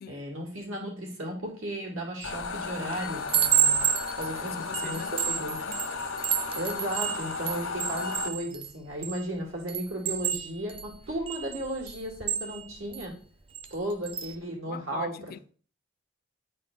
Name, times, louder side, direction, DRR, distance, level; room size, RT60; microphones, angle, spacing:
voice 1, 0.1-3.8 4.2-5.6 6.6-13.1 13.7-15.4, right 1 dB, 85° right, 2.3 m, -35 dB
sound 1, 2.2-8.3, left 4 dB, 85° left, 0.8 m, -35 dB
Chime, 2.2-2.5 2.9-9.2 9.7-13.1 13.5-13.8 14.0-14.4, right 9 dB, 30° right, 0.5 m, -30 dB
voice 2, 4.4-5.1 5.7-5.8 14.7-15.4, left 8 dB, 50° left, 0.3 m, -42 dB
8.9 x 4.2 x 3.6 m
head